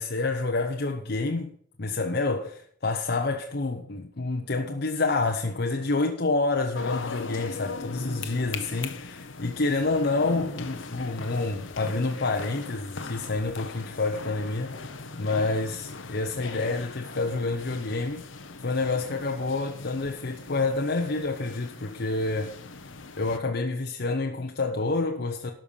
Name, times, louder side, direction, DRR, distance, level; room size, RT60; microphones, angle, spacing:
voice 1, 0.0-1.5 1.8-14.7 15.1-18.3 18.6-22.5 23.2-25.5, left 3 dB, 60° left, 0.9 m, -28 dB
sound 1, 6.7-23.4, left 3 dB, 85° left, 1.0 m, -40 dB
12.5 x 5.7 x 7.0 m
head